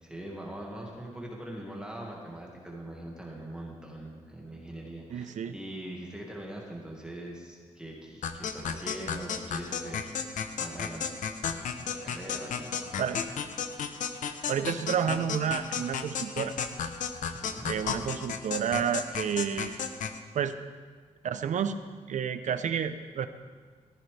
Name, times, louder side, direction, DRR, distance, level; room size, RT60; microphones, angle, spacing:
voice 1, 0.0-11.2 11.8-13.0 17.3-17.7, right 1 dB, 5° right, -2 dB, 1.9 m, -42 dB
voice 2, 5.1-5.6 13.0-13.2 14.5-16.5 17.7-19.9 20.3-20.6 21.2-21.8 22.1-23.3, right 8 dB, 70° right, 10 dB, 0.7 m, -30 dB
sound 1, 8.2-20.2, left 7 dB, 80° left, 0.8 m, -34 dB
14.5 x 14.5 x 3.4 m, 1.5 s
wide cardioid pair, 130°, 13 cm